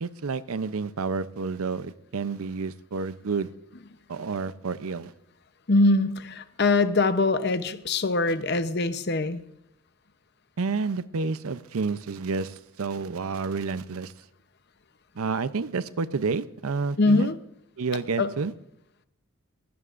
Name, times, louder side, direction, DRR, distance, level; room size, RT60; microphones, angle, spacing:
voice 1, 0.0-3.5 4.1-5.1 8.5-8.6 10.6-14.1 15.2-17.3 17.8-18.5, right 4 dB, 80° right, 15 dB, 0.6 m, -30 dB
voice 2, 5.7-9.4 17.0-17.4 18.2-18.3, left 2 dB, 50° left, 11 dB, 0.8 m, -23 dB
22.0 x 16.5 x 2.5 m, 0.76 s
head